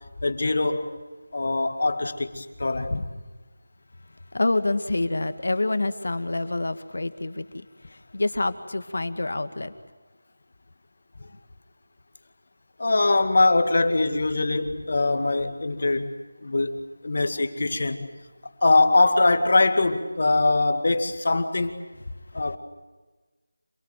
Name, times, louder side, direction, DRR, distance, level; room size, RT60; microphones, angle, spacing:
voice 1, 0.2-0.9 1.3-3.1 12.8-16.1 16.4-18.1 18.6-21.7 22.3-22.6, left 2 dB, 55° left, 2.2 m, -22 dB
voice 2, 4.3-7.5 8.1-9.7, left 2 dB, 70° left, 2.0 m, -26 dB
27.0 x 18.5 x 9.4 m
figure-of-eight pair, 170°, 0 cm